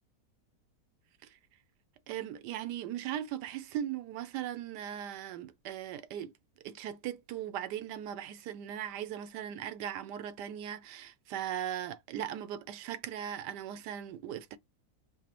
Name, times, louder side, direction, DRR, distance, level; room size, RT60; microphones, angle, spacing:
voice 1, 2.1-6.3 6.6-14.6, right 10 dB, 90° right, 1.2 m, -38 dB
5.0 x 2.1 x 2.9 m
omnidirectional pair, 1.8 m